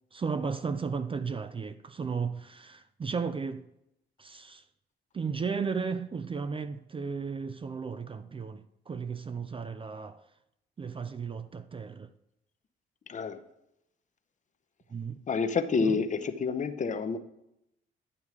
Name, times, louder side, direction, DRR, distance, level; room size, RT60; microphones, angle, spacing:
voice 1, 0.1-3.7 4.2-4.6 5.1-10.2 10.8-12.1 14.9-15.2 15.9-16.0, right 5 dB, 25° right, 0.4 m, -34 dB
voice 2, 15.3-17.2, left 5 dB, 40° left, 0.8 m, -28 dB
11.0 x 7.0 x 4.8 m
cardioid pair, 90°, 20 cm